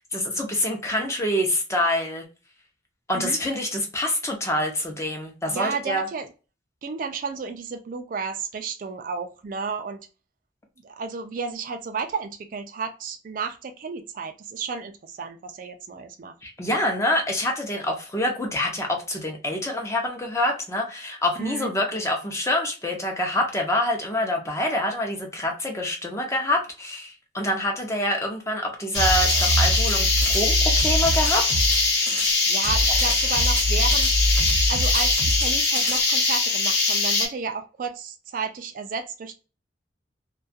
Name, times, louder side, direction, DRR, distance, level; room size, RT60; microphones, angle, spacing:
voice 1, 0.1-2.2 3.1-6.1 16.4-31.5, left 1 dB, 15° left, 0.5 m, -26 dB
voice 2, 5.5-6.3 6.8-10.0 10.8-16.3 21.4-21.7 32.5-34.1 34.7-39.3, right 5 dB, 45° right, 0.3 m, -32 dB
sound 1, 28.9-37.3, left 3 dB, 75° left, 0.9 m, -22 dB
sound 2, 28.9-32.3 32.6-36.0, equal, 75° right, 0.7 m, -25 dB
2.3 x 2.2 x 2.5 m
head